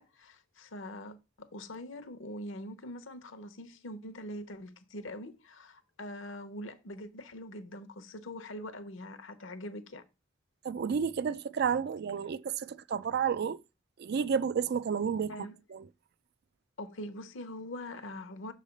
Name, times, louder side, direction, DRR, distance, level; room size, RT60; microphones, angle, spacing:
voice 1, 0.0-10.0 15.3-15.6 16.8-18.5, left 1 dB, 65° left, 0.8 m, -43 dB
voice 2, 10.6-13.6 14.0-15.4 15.7-15.8, right 7 dB, 50° right, 0.3 m, -31 dB
6.3 x 3.3 x 5.2 m
head